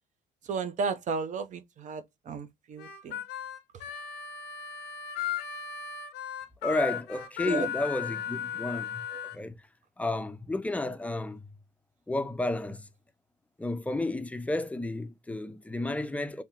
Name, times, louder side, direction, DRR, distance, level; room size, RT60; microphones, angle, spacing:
voice 1, 0.4-3.2 7.4-7.7 9.1-9.3, right 5 dB, 45° right, 0.6 m, -34 dB
Harmonica, 2.8-9.4, left 9 dB, 85° left, 0.7 m, -36 dB
voice 2, 6.6-9.0 9.3-9.6 10.0-11.4 12.1-12.9 13.6-16.4, left 2 dB, 10° left, 0.5 m, -32 dB
3.5 x 2.8 x 2.9 m
cardioid pair, 110°, 17 cm